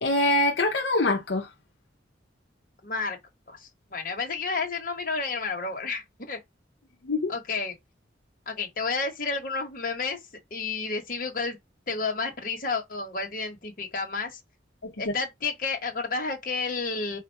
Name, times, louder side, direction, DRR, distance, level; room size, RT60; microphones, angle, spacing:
voice 1, 0.0-1.5 7.0-7.3 14.8-15.1, left 2 dB, 75° left, 0.7 m, -24 dB
voice 2, 2.8-3.2 3.5-6.4 7.3-7.7 8.5-10.2 10.5-11.6 11.9-14.4 15.0-17.2, left 4 dB, 45° left, 1.2 m, -31 dB
4.3 x 2.5 x 4.5 m
head